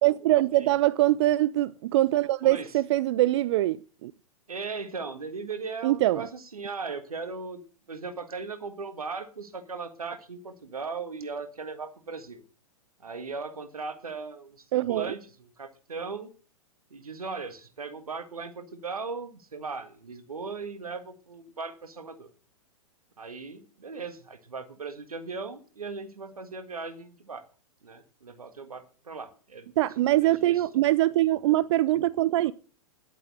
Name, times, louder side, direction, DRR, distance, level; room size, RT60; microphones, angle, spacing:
voice 1, 0.0-4.1 5.8-6.2 14.7-15.1 29.8-32.5, right 15 dB, 50° right, 0.5 m, -23 dB
voice 2, 2.4-2.8 4.5-7.6 7.9-12.4 13.0-16.3 16.9-22.3 23.2-27.4 27.8-29.7 30.1-30.6, right 4 dB, 85° right, 1.8 m, -38 dB
11.0 x 8.5 x 6.3 m
figure-of-eight pair, 105°, 18 cm